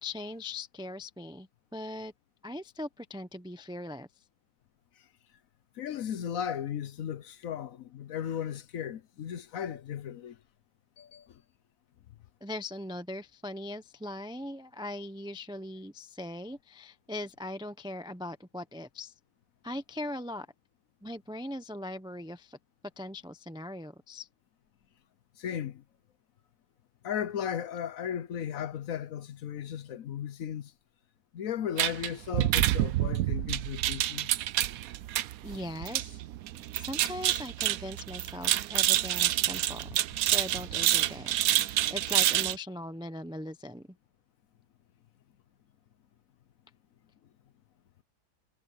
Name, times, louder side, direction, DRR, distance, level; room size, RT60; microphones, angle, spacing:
voice 1, 0.0-2.1 2.4-4.1 12.4-19.1 19.6-20.5 21.0-22.6 23.0-24.3 35.4-36.2 36.7-43.9, left 1 dB, 5° right, 0.6 m, -40 dB
voice 2, 5.8-10.4 11.0-11.4 25.4-25.8 27.0-30.7 31.3-34.3, left 9 dB, 65° left, 1.1 m, -36 dB
sound 1, 31.8-42.6, right 14 dB, 70° right, 1.0 m, -28 dB
omnidirectional pair, 1.7 m